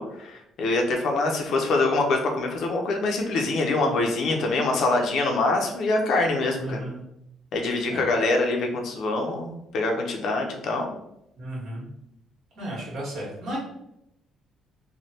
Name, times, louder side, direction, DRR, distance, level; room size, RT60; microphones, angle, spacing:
voice 1, 0.0-6.8 7.5-10.9, left 2 dB, 65° left, 2 dB, 0.6 m, -24 dB
voice 2, 6.6-7.0 7.9-8.1 11.4-11.9 12.5-13.6, right 1 dB, 65° right, -5 dB, 1.5 m, -34 dB
3.2 x 2.2 x 2.8 m, 0.82 s
cardioid pair, 125°, 0 cm